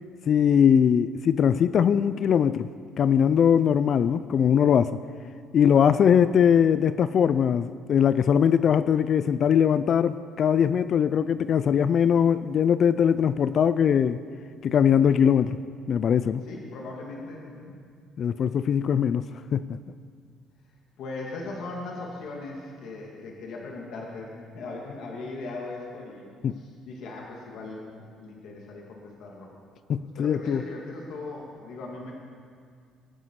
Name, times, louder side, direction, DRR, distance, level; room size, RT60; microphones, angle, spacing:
voice 1, 0.3-2.7 3.0-5.0 5.5-14.2 14.6-15.6 15.9-16.4 18.2-19.2 19.5-19.8 26.4-26.6 29.9-30.6, left 8 dB, 40° left, 14 dB, 0.3 m, -21 dB
voice 2, 16.4-17.8 21.0-26.2 26.6-29.5 30.2-32.1, left 3 dB, 65° left, -2 dB, 2.4 m, -39 dB
22.0 x 9.4 x 4.8 m, 2.1 s
cardioid pair, 160°, 0 cm